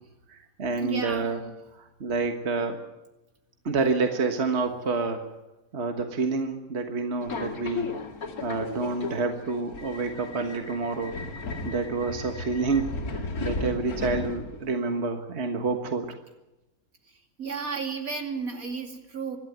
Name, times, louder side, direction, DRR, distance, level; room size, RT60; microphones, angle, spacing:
voice 1, 0.3-1.4 1.8-2.8 3.6-5.3 5.7-7.9 8.4-11.1 11.6-16.1, right 4 dB, 50° right, 5 dB, 1.7 m, -28 dB
voice 2, 0.8-1.5 17.4-19.4, right 5 dB, 75° right, 3 dB, 3.1 m, -33 dB
Subway metro underground, 7.2-14.8, left 3 dB, 90° left, 2.5 m, -35 dB
25.0 x 12.0 x 9.2 m, 0.97 s
omnidirectional pair, 1.5 m